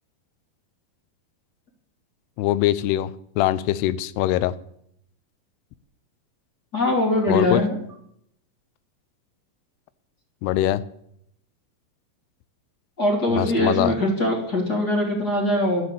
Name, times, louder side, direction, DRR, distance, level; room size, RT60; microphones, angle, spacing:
voice 1, 2.4-3.1 3.4-4.5 7.3-7.6 10.4-10.8 13.3-14.0, left 13 dB, 85° left, 16 dB, 2.7 m, -22 dB
voice 2, 6.7-7.8 13.0-15.8, left 1 dB, 25° left, 0 dB, 3.1 m, -22 dB
12.5 x 9.6 x 8.3 m, 0.72 s
omnidirectional pair, 4.7 m